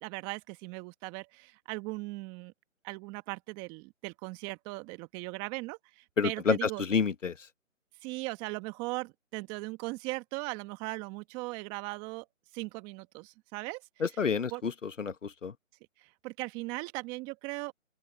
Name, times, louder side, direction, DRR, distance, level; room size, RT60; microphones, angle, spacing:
voice 1, 0.0-2.5 2.8-6.8 8.0-12.2 12.5-13.8 14.5-14.6 16.0-17.7, right 24 dB, 10° right, 1.4 m, -38 dB
voice 2, 6.2-7.5 14.0-15.5, left 5 dB, 70° left, 1.5 m, -29 dB
open air
figure-of-eight pair, 155°, 39 cm